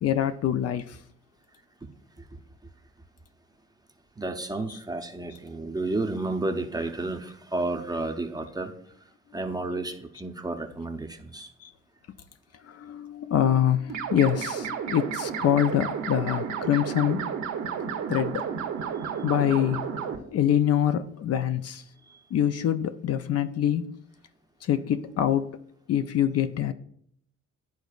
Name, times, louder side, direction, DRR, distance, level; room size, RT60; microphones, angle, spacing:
voice 1, 0.0-1.0 4.7-4.8 5.3-5.4 11.6-11.7 12.6-17.3 18.1-18.5 19.2-19.9 20.3-21.8 22.3-24.0 24.6-25.6 25.9-26.7, left 10 dB, 55° left, 0.5 m, -25 dB
voice 2, 4.2-8.7 9.3-11.5, right 2 dB, 15° right, 0.6 m, -31 dB
sound 1, 13.9-20.2, right 7 dB, 65° right, 0.9 m, -32 dB
11.5 x 3.9 x 2.4 m
cardioid pair, 90°, 30 cm